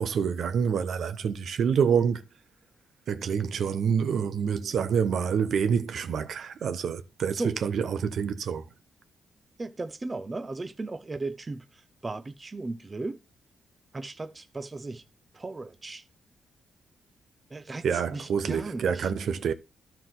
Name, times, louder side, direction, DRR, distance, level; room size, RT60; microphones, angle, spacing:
voice 1, 0.0-2.2 3.1-8.6 17.8-19.5, right 7 dB, 70° right, 1.0 m, -27 dB
voice 2, 9.6-13.2 13.9-15.0 15.3-16.0 17.5-19.1, right 3 dB, 25° right, 0.9 m, -36 dB
13.0 x 4.7 x 3.9 m
cardioid pair, 100°, 0 cm